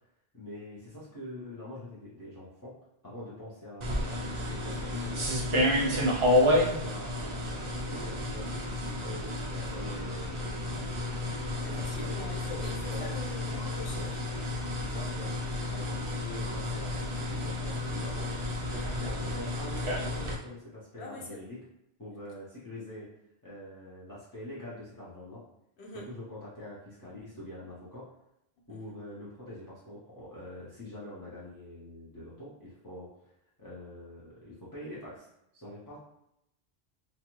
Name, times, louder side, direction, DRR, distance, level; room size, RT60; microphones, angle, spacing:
voice 1, 0.4-2.8 3.0-5.3 5.7-9.3 9.5-11.1 11.5-13.3 13.9-14.1 14.8-18.3 18.7-21.7 22.0-23.1 23.4-25.4 25.9-28.1 28.7-33.3 33.6-35.3 35.5-36.0, left 1 dB, 20° left, -9 dB, 0.6 m, -44 dB
sound 1, 3.8-20.3, left 1 dB, 50° right, 0.3 m, -31 dB
voice 2, 11.6-14.0 14.5-14.7 21.0-21.5 25.8-26.0 28.7-28.8, left 3 dB, 80° left, -2 dB, 1.0 m, -43 dB
2.6 x 2.3 x 2.9 m, 0.84 s
omnidirectional pair, 1.1 m